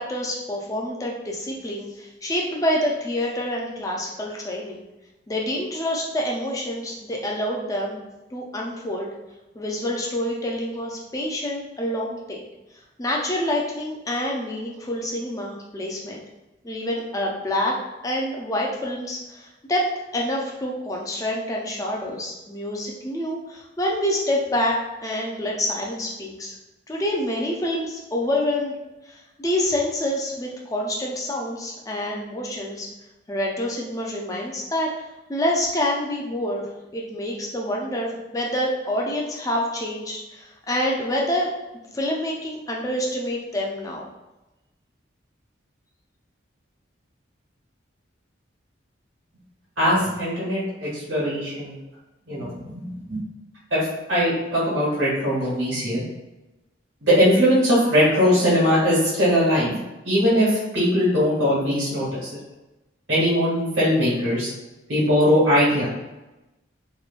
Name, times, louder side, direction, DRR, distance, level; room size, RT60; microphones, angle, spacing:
voice 1, 0.0-4.8 5.3-8.0 8.3-9.1 9.6-12.4 13.0-16.2 16.6-17.8 18.0-26.6 26.9-28.8 29.0-32.9 33.3-34.9 35.3-36.7 36.9-41.5 41.9-44.1, left 1 dB, 20° left, -1 dB, 0.4 m, -27 dB
voice 2, 49.8-51.8 52.3-53.2 53.7-53.8 54.1-56.0 57.0-59.8 60.0-62.3 63.1-64.5 64.9-65.9, equal, 80° right, -8 dB, 1.2 m, -20 dB
3.0 x 2.2 x 2.3 m, 1.0 s
head